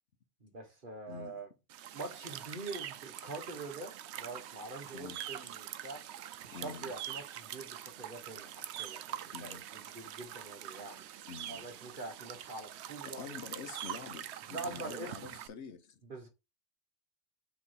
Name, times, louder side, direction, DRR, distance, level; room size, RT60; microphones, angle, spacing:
voice 1, 0.4-1.5 1.9-6.0 6.4-11.0 11.5-13.3 13.5-13.7 14.5-15.3 16.0-16.3, right 2 dB, 45° right, 1.4 m, -45 dB
sound 1, 1.7-15.5, right 11 dB, 75° right, 0.8 m, -44 dB
voice 2, 6.5-6.9 9.3-9.6 11.3-11.7 13.0-16.0, left 6 dB, 75° left, 1.1 m, -46 dB
6.0 x 3.1 x 5.6 m
omnidirectional pair, 1.2 m